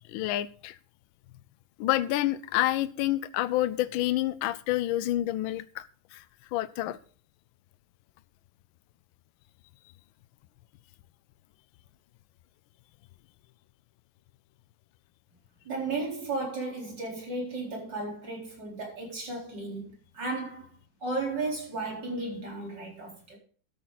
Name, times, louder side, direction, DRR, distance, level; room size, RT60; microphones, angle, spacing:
voice 1, 0.1-0.8 1.8-5.8 6.1-6.2 6.5-7.0, left 15 dB, 80° left, 1.4 m, -28 dB
voice 2, 15.6-20.7 21.0-23.4, right 3 dB, 60° right, 4.7 m, -34 dB
13.0 x 8.5 x 4.0 m
omnidirectional pair, 2.2 m